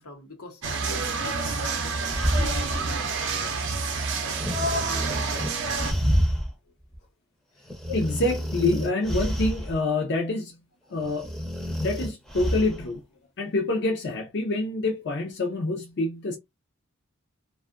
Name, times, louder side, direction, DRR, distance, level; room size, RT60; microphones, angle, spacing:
voice 1, 0.0-3.1, left 3 dB, 85° left, 0.9 m, -44 dB
sound 1, 0.6-5.9, right 4 dB, 55° right, 0.6 m, -28 dB
sound 2, 1.7-2.9 4.4-6.5 6.9-7.0 7.7-9.8 10.9-12.8, equal, ahead, 0.6 m, -28 dB
voice 2, 7.9-10.6 10.9-11.3 11.8-13.0 13.4-16.4, left 2 dB, 50° left, 0.5 m, -26 dB
2.6 x 2.3 x 2.4 m
head